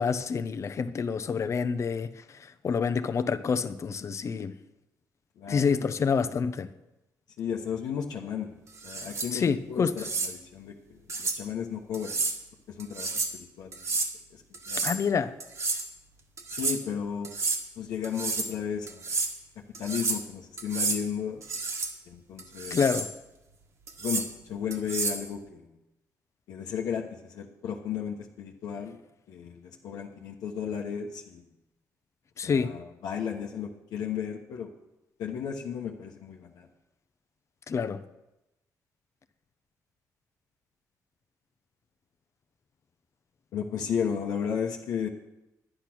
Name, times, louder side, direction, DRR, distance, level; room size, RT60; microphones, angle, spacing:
voice 1, 0.0-2.1 2.6-4.5 5.5-6.7 9.3-10.0 14.8-15.3 22.7-23.1 32.4-32.7 37.7-38.0, left 6 dB, 50° left, 0.8 m, -27 dB
voice 2, 5.4-5.7 7.4-8.5 8.8-9.4 9.7-10.0 10.3-10.7 11.2-12.2 12.8-13.1 13.6-13.7 14.7-15.0 16.6-17.3 17.8-19.0 19.8-21.4 22.1-22.8 24.0-25.7 26.5-27.0 27.3-28.9 29.3-31.4 32.4-34.7 35.2-36.7 43.5-45.1, left 7 dB, 80° left, 1.1 m, -33 dB
sound 1, 8.8-9.3 10.0-10.3 11.1-11.4 11.9-12.4 12.8-13.4 13.7-14.1 14.5-15.0 15.4-15.9 16.4-16.8 17.2-17.6 18.0-18.5 18.9-19.3 19.7-20.2 20.6-21.0 21.4-21.9 22.4-23.1 23.9-24.3 24.7-25.2, right 3 dB, 50° right, 1.8 m, -31 dB
10.5 x 10.0 x 6.1 m
cardioid pair, 80°, 7 cm